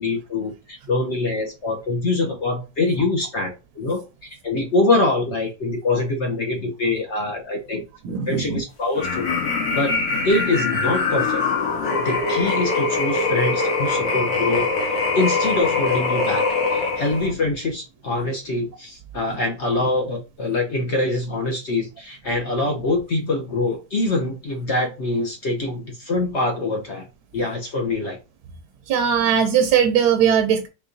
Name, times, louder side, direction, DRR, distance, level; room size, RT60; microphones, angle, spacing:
voice 1, 0.0-4.0 4.4-7.8 8.3-9.3 9.7-11.4 12.0-14.7 15.1-16.4 16.7-27.1 27.3-28.2, left 2 dB, 55° left, 0.8 m, -24 dB
voice 2, 8.0-8.4 28.9-30.7, right 8 dB, 70° right, 1.1 m, -19 dB
sound 1, 9.0-17.3, left 3 dB, 80° left, 2.0 m, -23 dB
4.5 x 3.3 x 2.6 m
omnidirectional pair, 2.0 m